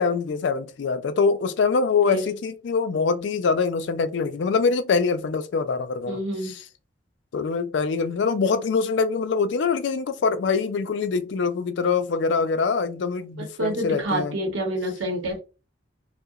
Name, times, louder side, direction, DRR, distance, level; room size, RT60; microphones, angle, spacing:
voice 1, 0.0-6.6 7.3-14.4, left 5 dB, 70° left, 0.3 m, -24 dB
voice 2, 6.1-6.5 13.4-15.4, right 1 dB, 85° right, 0.8 m, -28 dB
2.7 x 2.1 x 2.3 m
head